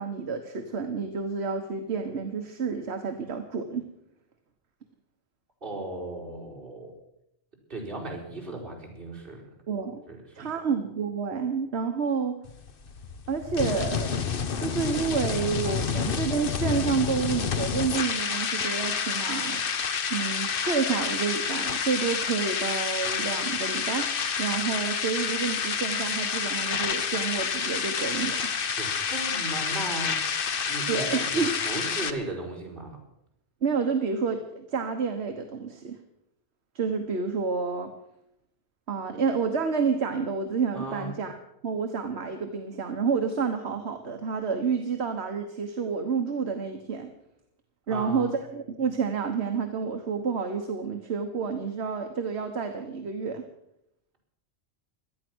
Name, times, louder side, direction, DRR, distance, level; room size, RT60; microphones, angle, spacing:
voice 1, 0.0-3.9 9.7-10.0 10.4-12.4 13.3-14.1 14.6-19.6 20.1-24.1 24.4-28.5 30.9-31.5 33.6-36.0 36.7-37.9 38.9-41.4 41.6-47.1 47.9-53.4, right 5 dB, 70° right, 5 dB, 1.5 m, -29 dB
voice 2, 5.6-6.9 7.7-9.4 10.1-10.5 28.8-30.2 30.7-33.0 40.7-41.1 47.9-48.3, right 2 dB, 50° right, -3 dB, 5.0 m, -36 dB
sound 1, 12.4-32.1, left 6 dB, 55° left, 1.0 m, -29 dB
18.0 x 12.0 x 6.2 m, 0.80 s
omnidirectional pair, 1.1 m